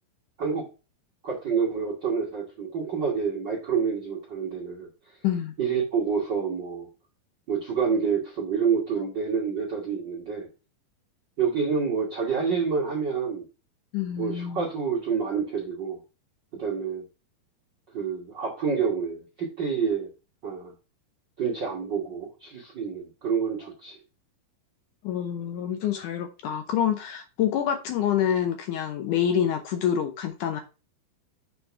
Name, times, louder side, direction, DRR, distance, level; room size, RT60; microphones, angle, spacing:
voice 1, 1.2-4.9 5.6-6.9 7.5-10.5 11.4-13.4 14.2-16.0 16.5-17.0 17.9-20.1 20.4-20.7 21.4-24.0, right 6 dB, 55° right, 1.2 m, -28 dB
voice 2, 5.2-5.5 13.9-14.7 25.0-30.6, left 9 dB, 75° left, 2.0 m, -27 dB
6.8 x 4.1 x 5.5 m
omnidirectional pair, 4.2 m